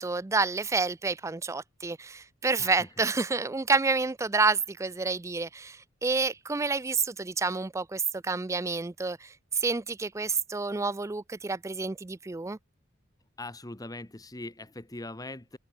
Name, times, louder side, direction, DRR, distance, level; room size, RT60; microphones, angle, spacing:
voice 1, 0.0-12.6, right 4 dB, 15° right, 0.4 m, -29 dB
voice 2, 13.4-15.6, left 2 dB, 20° left, 1.2 m, -41 dB
open air
head